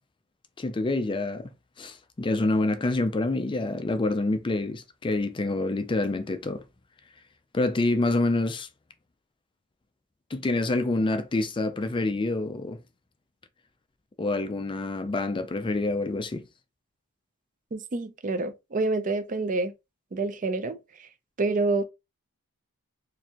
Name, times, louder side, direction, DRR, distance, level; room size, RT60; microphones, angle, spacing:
voice 1, 0.6-1.5 1.8-6.6 7.5-8.7 10.3-12.8 14.2-16.4, left 2 dB, 20° left, 0.4 m, -27 dB
voice 2, 17.7-19.7 20.1-20.8 21.4-21.8, right 3 dB, 35° right, 0.5 m, -27 dB
4.5 x 2.6 x 2.9 m
head